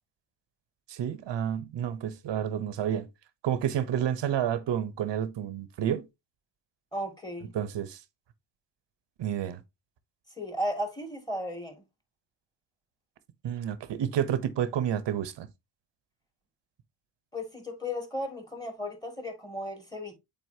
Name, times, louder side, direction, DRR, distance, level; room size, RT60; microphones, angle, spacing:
voice 1, 0.9-3.1 3.4-6.0 7.5-8.0 9.2-9.6 13.4-15.5, right 9 dB, 60° right, 1.0 m, -30 dB
voice 2, 6.9-7.5 10.4-11.8 17.3-20.1, equal, 10° left, 2.2 m, -35 dB
7.9 x 4.3 x 2.8 m
cardioid pair, 110°, 47 cm